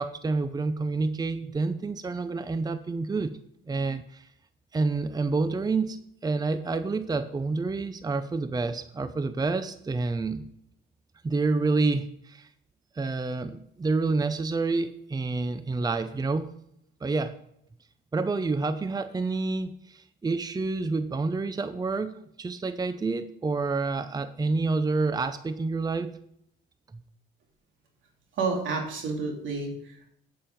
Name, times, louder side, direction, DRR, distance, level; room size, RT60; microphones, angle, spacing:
voice 1, 0.0-3.3 3.7-4.3 4.7-10.4 11.2-12.5 13.0-16.5 17.0-17.3 18.1-26.1, right 3 dB, 20° right, 11 dB, 0.6 m, -28 dB
voice 2, 28.3-30.1, right 4 dB, 75° right, 1 dB, 3.0 m, -30 dB
8.7 x 7.7 x 5.2 m, 0.73 s
cardioid pair, 90°, 20 cm